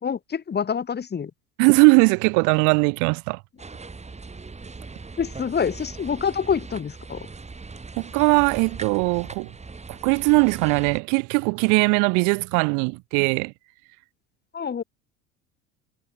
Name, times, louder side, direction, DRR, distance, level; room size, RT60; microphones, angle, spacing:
voice 1, 0.0-1.3 5.2-7.3 14.5-14.8, left 7 dB, 25° left, 2.4 m, -26 dB
voice 2, 1.6-3.4 8.0-9.5 9.9-13.5, right 35 dB, 50° right, 0.6 m, -20 dB
sound 1, 3.6-11.0, right 4 dB, 15° right, 5.9 m, -40 dB
figure-of-eight pair, 70°, 38 cm